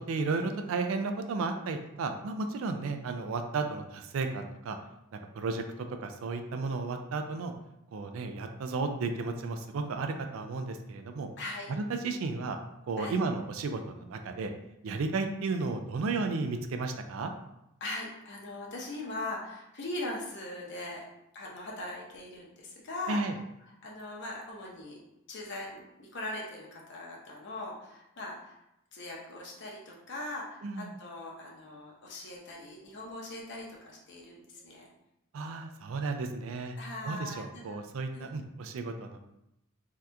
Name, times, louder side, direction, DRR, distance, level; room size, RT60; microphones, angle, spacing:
voice 1, 0.0-4.8 5.1-5.6 6.0-7.5 7.9-11.3 11.7-12.6 12.9-14.5 14.8-17.3 23.1-23.4 30.6-30.9 35.3-36.8 37.0-39.2, right 3 dB, 75° right, 6 dB, 0.3 m, -33 dB
voice 2, 11.4-11.7 13.0-13.2 17.8-21.1 21.3-23.2 23.8-25.0 25.3-28.6 28.9-34.9 36.8-37.8 38.1-38.3, left 2 dB, 55° left, -2 dB, 0.7 m, -40 dB
2.8 x 2.3 x 3.3 m, 0.85 s
head